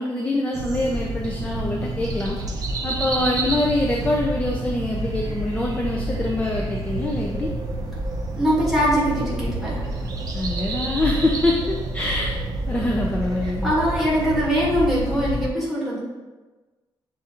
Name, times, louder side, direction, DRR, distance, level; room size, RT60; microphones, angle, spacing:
voice 1, 0.0-2.4 2.8-7.5 10.3-12.3 12.7-13.7, left 1 dB, 15° left, -1 dB, 0.4 m, -24 dB
sound 1, 0.5-15.5, right 2 dB, 45° right, 0.5 m, -28 dB
voice 2, 8.4-9.9 13.6-16.0, equal, 5° right, -7 dB, 1.4 m, -22 dB
6.5 x 2.5 x 2.8 m, 1.2 s
wide cardioid pair, 155°, 9 cm